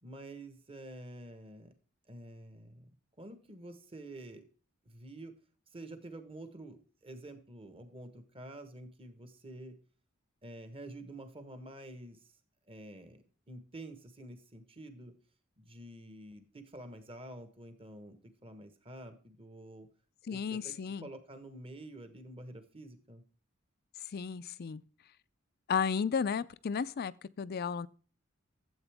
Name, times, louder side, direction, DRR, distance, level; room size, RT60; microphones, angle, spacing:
voice 1, 0.0-1.7 2.1-2.9 3.2-4.4 4.8-5.3 5.7-6.8 7.0-9.8 10.4-12.2 12.7-13.2 13.5-15.1 15.6-19.9 20.3-20.7 21.0-23.2, right 1 dB, 25° right, 1.2 m, -48 dB
voice 2, 20.3-21.1 24.1-24.8 25.7-27.9, left 6 dB, 50° left, 0.4 m, -33 dB
12.0 x 7.9 x 3.5 m
head